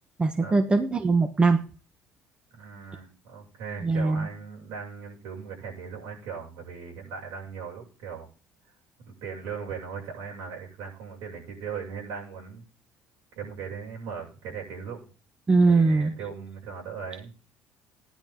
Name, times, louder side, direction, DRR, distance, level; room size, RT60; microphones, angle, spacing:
voice 1, 0.2-1.6 3.8-4.3 15.5-16.1, right 3 dB, 20° right, 7 dB, 1.2 m, -21 dB
voice 2, 2.5-8.3 9.0-12.6 13.3-15.0 15.7-17.3, right 6 dB, 85° right, -2 dB, 7.2 m, -38 dB
15.0 x 10.5 x 3.9 m, 0.36 s
cardioid pair, 110°, 5 cm